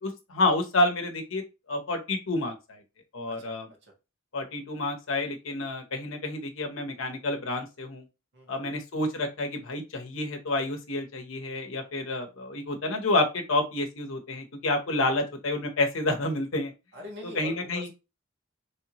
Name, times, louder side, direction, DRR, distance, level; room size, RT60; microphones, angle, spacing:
voice 1, 0.0-2.8 3.1-3.7 4.3-8.0 8.5-16.7 17.2-17.9, left 2 dB, 75° left, 4 dB, 0.8 m, -29 dB
voice 2, 8.3-8.7 16.9-17.9, right 1 dB, 55° right, 1 dB, 1.3 m, -43 dB
3.1 x 2.9 x 2.8 m, 0.27 s
head